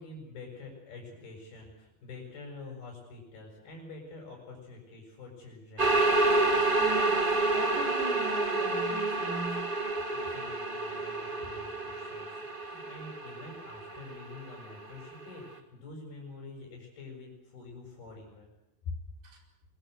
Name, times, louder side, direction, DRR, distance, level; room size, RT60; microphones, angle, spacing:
voice 1, 0.0-6.0 10.1-18.5 18.9-19.0, left 3 dB, 70° left, -1 dB, 8.8 m, -46 dB
sound 1, 5.8-15.2, right 2 dB, 35° right, 0.8 m, -29 dB
voice 2, 6.8-7.3 7.5-9.6 19.2-19.4, right 2 dB, 75° right, 2 dB, 6.9 m, -39 dB
25.5 x 22.5 x 8.1 m, 0.89 s
omnidirectional pair, 4.5 m